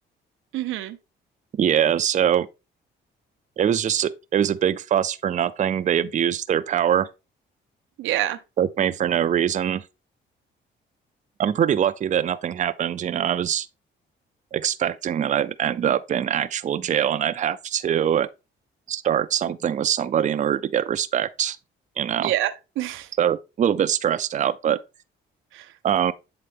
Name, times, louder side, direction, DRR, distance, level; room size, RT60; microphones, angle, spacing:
voice 1, 0.5-1.0 8.0-8.4 22.2-23.1 25.5-25.7, right 14 dB, 90° right, 0.6 m, -27 dB
voice 2, 1.5-2.5 3.6-7.1 8.6-9.8 11.4-13.7 14.5-18.3 18.9-21.6 22.0-22.3 23.2-24.8 25.8-26.1, right 9 dB, 40° right, 0.4 m, -23 dB
7.9 x 3.7 x 3.5 m
cardioid pair, 90°, 20 cm